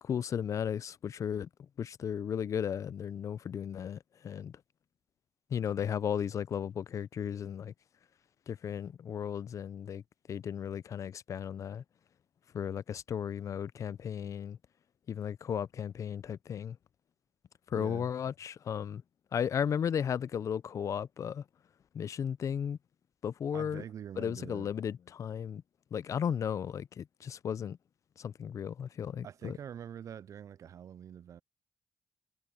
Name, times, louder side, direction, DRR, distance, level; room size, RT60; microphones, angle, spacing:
voice 1, 0.0-4.6 5.5-7.7 8.5-10.0 10.3-11.8 12.5-14.6 15.1-16.8 17.7-19.0 19.3-21.4 21.9-22.8 23.2-23.8 24.2-25.6 25.9-27.8 28.2-29.6, left 8 dB, 60° left, 0.5 m, -35 dB
voice 2, 17.7-18.1 23.5-24.7 29.2-31.4, right 9 dB, 60° right, 0.4 m, -45 dB
cardioid pair, 75°, 6 cm